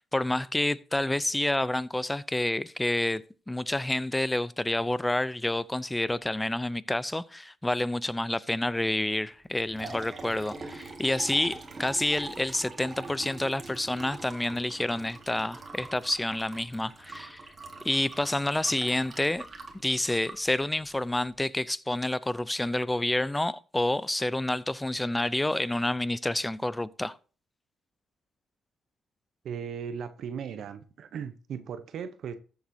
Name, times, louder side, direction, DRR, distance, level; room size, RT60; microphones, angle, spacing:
voice 1, 0.0-17.4 17.8-19.5 19.8-27.2, left 1 dB, 10° left, 0.5 m, -29 dB
Liquid, 9.4-21.3, right 3 dB, 35° right, 1.8 m, -44 dB
voice 2, 29.4-32.4, right 7 dB, 65° right, 0.7 m, -37 dB
14.0 x 7.2 x 2.7 m
cardioid pair, 90°, 0 cm